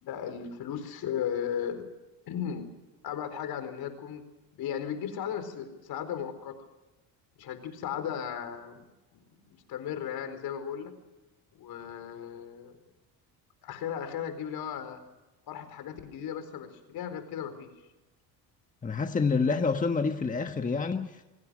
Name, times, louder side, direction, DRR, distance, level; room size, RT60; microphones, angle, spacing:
voice 1, 0.0-1.8 2.3-2.7 3.0-4.2 4.5-6.5 7.4-8.9 9.1-10.9 11.5-12.8 13.6-15.0 15.5-17.7, left 8 dB, 65° left, 4.4 m, -36 dB
voice 2, 18.8-21.2, left 4 dB, 20° left, 1.4 m, -28 dB
27.5 x 18.0 x 6.4 m
cardioid pair, 110°, 39 cm